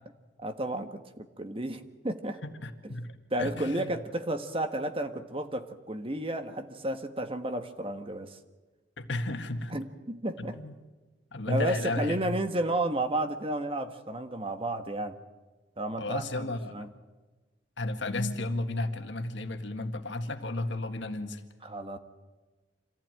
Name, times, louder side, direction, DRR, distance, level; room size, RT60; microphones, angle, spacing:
voice 1, 0.4-2.4 2.8-2.9 3.3-8.4 9.7-10.6 11.5-15.2 15.8-16.4 16.7-16.9 21.6-22.0, right 1 dB, 30° right, 8 dB, 1.4 m, -32 dB
voice 2, 2.4-3.9 9.0-9.8 10.5-10.7 11.3-12.3 16.0-16.9 17.8-21.4, left 2 dB, 70° left, 7 dB, 1.8 m, -33 dB
26.0 x 15.5 x 9.1 m, 1.2 s
head